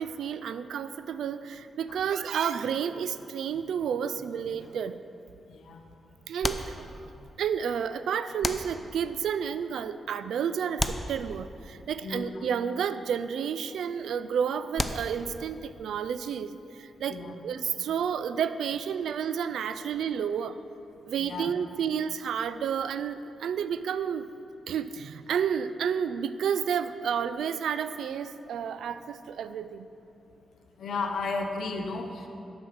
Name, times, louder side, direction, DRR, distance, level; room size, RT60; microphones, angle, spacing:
voice 1, 0.0-5.0 6.3-6.9 7.4-20.6 21.1-24.3 24.7-29.9, right 7 dB, 80° right, 13 dB, 0.3 m, -31 dB
sound 1, 4.6-5.2 6.4-7.4 8.4-9.2 10.8-11.8 14.7-15.6, left 1 dB, 15° left, 0.5 m, -34 dB
voice 2, 5.5-5.8 12.0-12.5 17.1-17.3 21.2-21.5 30.8-32.3, left 3 dB, 75° left, 4 dB, 0.9 m, -33 dB
7.9 x 6.2 x 6.4 m, 2.8 s
cardioid pair, 60°, 0 cm